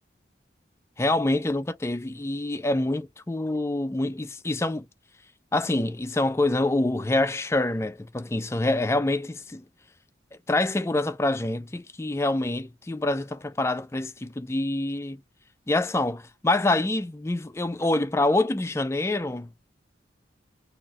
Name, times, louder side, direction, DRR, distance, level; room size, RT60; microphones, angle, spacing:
voice 1, 1.0-4.9 5.5-9.6 10.5-15.2 15.7-19.5, left 2 dB, 15° left, 0.3 m, -26 dB
4.2 x 2.5 x 4.2 m
head